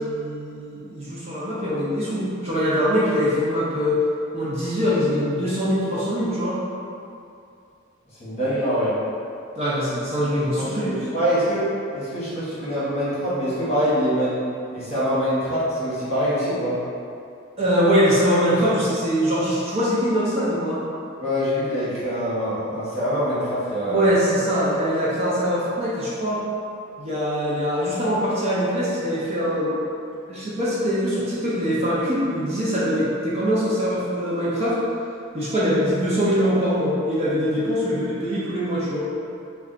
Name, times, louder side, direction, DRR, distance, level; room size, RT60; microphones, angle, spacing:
voice 1, 0.0-4.0 4.3-6.6 9.6-10.9 17.6-20.8 23.9-26.4 27.0-29.8 30.3-34.8 35.3-39.0, equal, 30° right, -8 dB, 0.6 m, -23 dB
voice 2, 8.2-9.0 10.4-14.4 14.7-16.8 21.2-24.2, equal, 30° left, -11 dB, 1.3 m, -24 dB
3.3 x 2.3 x 3.8 m, 2.5 s
head